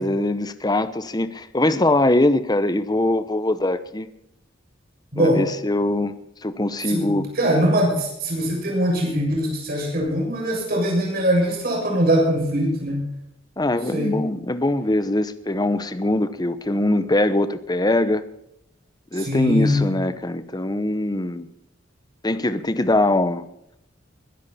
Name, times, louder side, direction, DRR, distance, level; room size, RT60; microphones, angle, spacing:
voice 1, 0.0-4.1 5.2-7.3 13.6-18.2 19.1-21.5 22.2-23.4, left 1 dB, 20° left, 0.9 m, -22 dB
voice 2, 6.8-13.1 13.9-14.2 19.1-19.8, equal, 50° right, 7.1 m, -22 dB
22.0 x 10.5 x 4.3 m
head